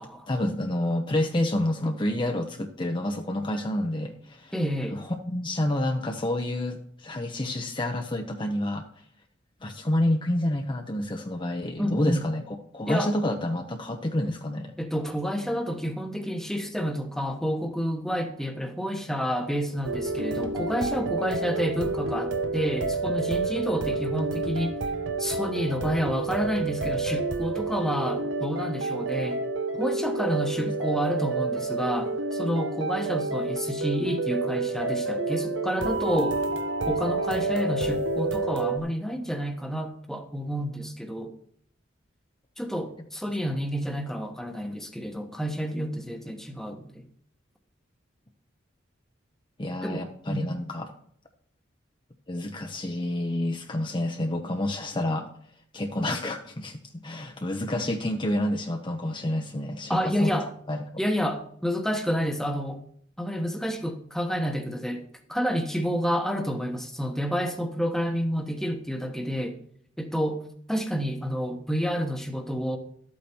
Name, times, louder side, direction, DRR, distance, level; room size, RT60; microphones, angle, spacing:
voice 1, 0.3-4.5 4.9-8.9 9.6-14.7 49.6-50.9 52.3-55.3 55.7-60.4 60.7-60.9, left 1 dB, 25° left, 0.8 m, -29 dB
voice 2, 4.5-5.0 11.8-12.2 12.9-13.1 14.8-24.8 25.2-29.4 29.7-36.4 36.9-41.3 42.6-47.0 49.8-50.5 59.9-60.5 61.0-62.8 63.2-69.6 70.0-70.4 70.7-72.8, equal, ahead, 1.1 m, -29 dB
sound 1, 19.8-38.8, right 3 dB, 85° right, 1.1 m, -29 dB
12.5 x 8.6 x 4.5 m
head